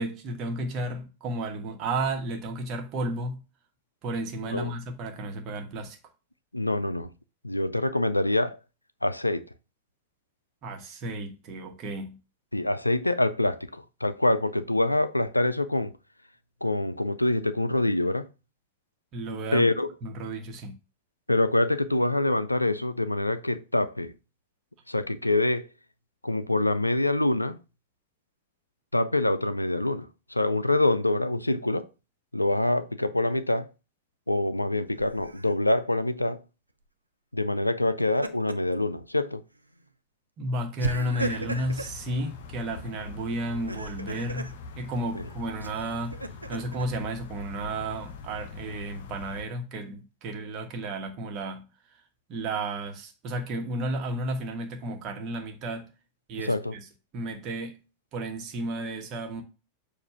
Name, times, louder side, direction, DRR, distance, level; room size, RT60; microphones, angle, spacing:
voice 1, 0.0-3.4 4.0-6.0 10.6-12.2 19.1-19.7 20.0-20.8 40.4-46.2 46.5-51.6 52.3-55.9 56.3-56.8 57.1-57.8 58.1-59.4, right 1 dB, 35° right, 1.2 m, -33 dB
voice 2, 4.4-4.7 6.5-7.1 7.4-8.6 9.0-9.5 12.5-15.9 16.6-18.3 19.5-19.9 21.3-24.1 24.9-25.7 26.2-27.6 28.9-31.9 32.3-33.7 34.3-36.4 37.3-39.4 45.1-45.3 56.4-56.7, left 2 dB, 85° left, 0.4 m, -25 dB
Laughter, 35.0-35.5 37.8-38.7 39.2-39.3 40.8-42.0 43.5-44.5 45.6-46.9, right 2 dB, 85° right, 0.4 m, -35 dB
sound 1, 41.2-49.4, left 4 dB, 55° left, 0.7 m, -43 dB
6.9 x 2.6 x 5.6 m
figure-of-eight pair, 90°, 0 cm